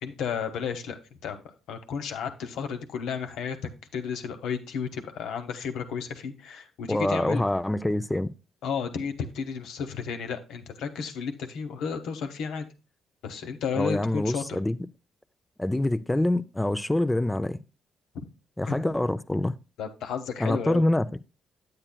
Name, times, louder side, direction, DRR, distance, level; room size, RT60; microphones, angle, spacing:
voice 1, 0.0-1.4 1.7-3.6 3.9-7.4 8.6-12.7 13.2-14.4 18.1-18.2 18.7-18.9 19.8-20.9, left 6 dB, 80° left, 1.0 m, -32 dB
voice 2, 6.9-8.3 13.7-14.8 15.6-17.6 18.6-19.6 20.4-21.2, left 1 dB, 10° left, 0.4 m, -25 dB
8.8 x 8.8 x 2.2 m
cardioid pair, 90°, 0 cm